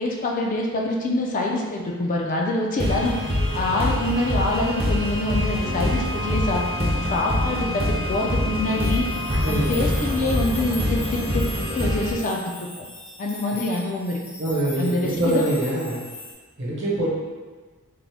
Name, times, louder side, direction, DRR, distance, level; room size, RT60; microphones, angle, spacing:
voice 1, 0.0-3.2 3.5-9.1 9.5-12.4 13.2-14.2 14.8-15.5, left 2 dB, 35° left, 0 dB, 0.3 m, -25 dB
sound 1, 2.8-12.1, left 1 dB, 25° right, 0.5 m, -25 dB
sound 2, 8.7-16.3, left 2 dB, 60° left, 0.9 m, -40 dB
voice 2, 9.4-9.9 14.4-16.0 16.6-17.1, right 1 dB, 55° right, -5 dB, 1.0 m, -24 dB
3.7 x 2.1 x 3.4 m, 1.4 s
head